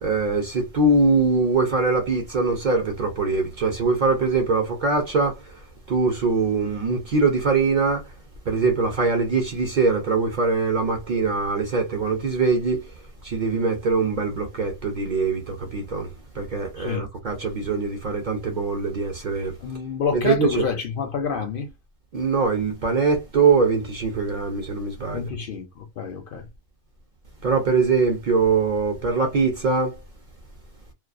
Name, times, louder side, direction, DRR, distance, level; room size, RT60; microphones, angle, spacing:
voice 1, 0.0-5.3 5.9-8.0 8.5-12.8 13.2-16.1 16.4-19.5 20.1-20.6 22.1-25.3 27.4-29.9, right 4 dB, 55° right, 0.5 m, -22 dB
voice 2, 16.8-17.1 19.6-21.7 25.1-26.4, left 6 dB, 60° left, 0.6 m, -28 dB
2.3 x 2.3 x 2.4 m
omnidirectional pair, 1.3 m